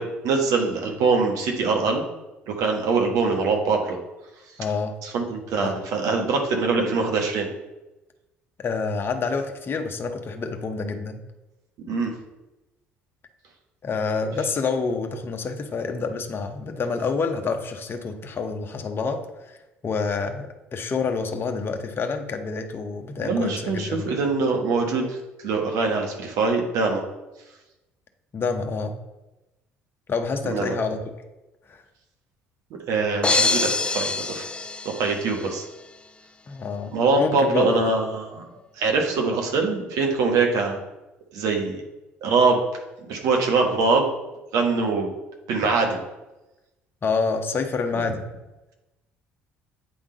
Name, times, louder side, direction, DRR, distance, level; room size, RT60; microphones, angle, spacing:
voice 1, 0.0-2.0 2.5-4.0 5.0-7.5 11.9-12.1 23.2-25.2 25.4-27.0 30.4-30.7 32.9-34.4 35.0-35.6 36.9-38.4 38.8-40.8 41.3-41.8 42.2-42.6 43.1-44.1 44.5-45.1 45.5-46.0, right 4 dB, 60° right, 2 dB, 1.3 m, -23 dB
voice 2, 4.6-5.0 5.6-5.7 8.6-11.2 13.8-19.6 19.8-24.1 28.3-29.0 30.1-31.0 31.7-31.8 36.5-37.9 47.0-48.2, left 4 dB, 35° left, 5 dB, 0.8 m, -27 dB
sound 1, 33.2-35.5, left 3 dB, 15° left, 0.4 m, -25 dB
8.4 x 3.7 x 4.0 m, 1.0 s
figure-of-eight pair, 55°, 6 cm